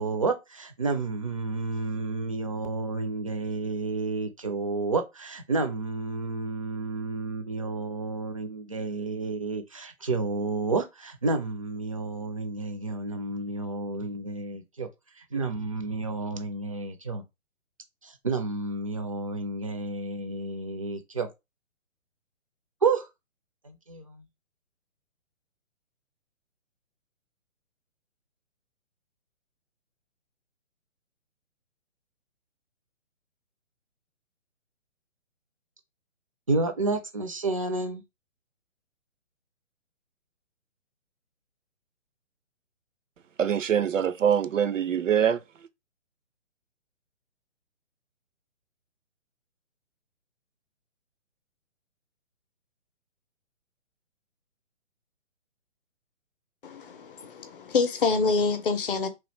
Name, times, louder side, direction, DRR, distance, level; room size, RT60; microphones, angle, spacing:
voice 1, 0.0-14.9 15.3-17.2 18.0-21.3 22.8-23.1 23.6-24.3 36.5-38.0, right 3 dB, 30° right, 0.4 m, -30 dB
voice 2, 43.4-45.4, right 8 dB, 75° right, 0.6 m, -24 dB
voice 3, 56.6-59.1, left 4 dB, 45° left, 0.6 m, -26 dB
2.9 x 2.2 x 3.2 m
figure-of-eight pair, 140°, 38 cm